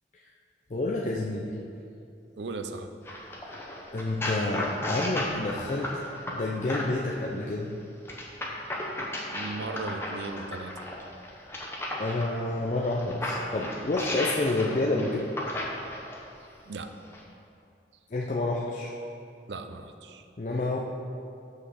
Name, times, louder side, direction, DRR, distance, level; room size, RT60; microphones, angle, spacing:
voice 1, 0.7-1.6 3.4-3.6 3.9-7.7 12.0-15.3 18.1-18.9 20.4-20.8, left 2 dB, 40° left, -2 dB, 0.5 m, -29 dB
voice 2, 2.4-2.9 9.3-10.7 16.7-16.9 19.5-20.3, right 3 dB, 80° right, 8 dB, 0.5 m, -37 dB
sound 1, 3.1-7.1 8.1-12.3 12.8-16.2 17.0-17.2, left 1 dB, 15° left, 0.9 m, -34 dB
6.2 x 5.6 x 6.4 m, 2.6 s
head